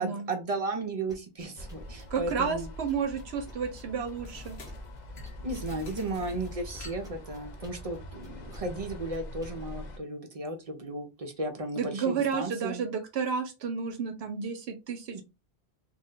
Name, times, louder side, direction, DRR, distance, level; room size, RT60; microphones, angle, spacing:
voice 1, 0.0-2.7 5.4-12.8 15.1-15.2, right 2 dB, 45° right, 4 dB, 0.6 m, -35 dB
sound 1, 1.1-5.0 5.2-9.5, left 1 dB, 5° right, 0.8 m, -51 dB
sound 2, 1.6-10.0, left 1 dB, 50° left, 0.6 m, -43 dB
sound 3, 2.1-2.3 4.2-7.9, left 1 dB, 75° left, 1.3 m, -49 dB
voice 2, 2.1-4.6 11.8-15.2, right 6 dB, 75° right, 6 dB, 0.8 m, -31 dB
2.8 x 2.1 x 3.7 m, 0.27 s
omnidirectional pair, 1.1 m